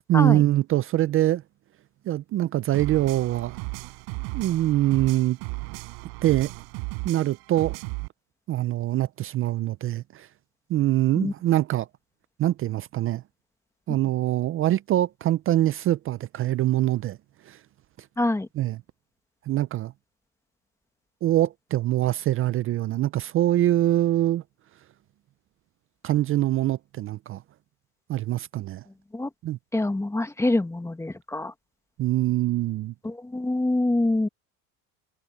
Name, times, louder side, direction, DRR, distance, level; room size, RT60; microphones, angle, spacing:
voice 1, 0.1-1.4 2.1-3.6 4.3-5.4 6.2-6.5 7.0-7.8 8.5-10.3 10.7-11.9 12.4-13.2 13.9-17.2 17.5-17.6 18.6-18.8 19.5-19.9 21.2-24.4 26.0-27.4 28.1-28.8 29.4-29.6 32.0-32.9, right 14 dB, 35° right, 0.4 m, -24 dB
sound 1, 2.7-8.1, right 33 dB, 80° right, 4.1 m, -35 dB
voice 2, 18.2-18.5 29.1-29.3 29.7-31.5 33.0-34.3, left 2 dB, 5° left, 1.5 m, -25 dB
cardioid pair, 130°, 39 cm